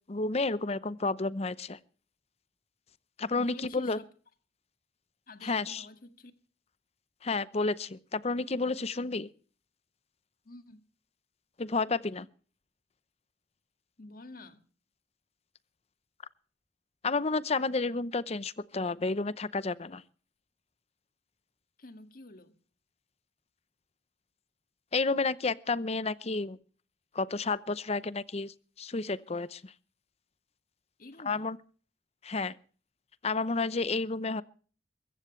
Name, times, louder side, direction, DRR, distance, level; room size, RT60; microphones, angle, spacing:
voice 1, 0.1-1.8 3.2-4.0 5.4-5.8 7.2-9.3 11.6-12.3 17.0-20.0 24.9-26.6 27.1-29.7 31.3-31.6 32.2-32.5 33.2-34.4, left 3 dB, 35° left, 0.7 m, -31 dB
voice 2, 3.4-4.1 5.3-6.3 10.4-10.8 14.0-14.6 21.8-22.6 31.0-31.5, left 2 dB, 50° left, 1.9 m, -49 dB
22.5 x 14.5 x 3.2 m
head